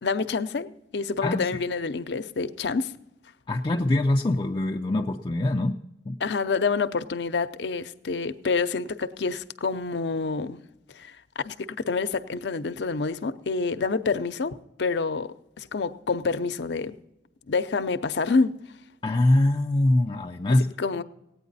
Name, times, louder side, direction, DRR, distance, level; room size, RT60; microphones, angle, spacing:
voice 1, 0.0-2.9 6.2-10.6 10.9-11.5 11.9-16.9 17.5-18.5 20.8-21.0, left 4 dB, 70° left, 0.6 m, -27 dB
voice 2, 3.5-5.8 6.1-6.2 19.0-20.7, left 1 dB, 25° left, 0.4 m, -23 dB
17.0 x 9.2 x 4.1 m
head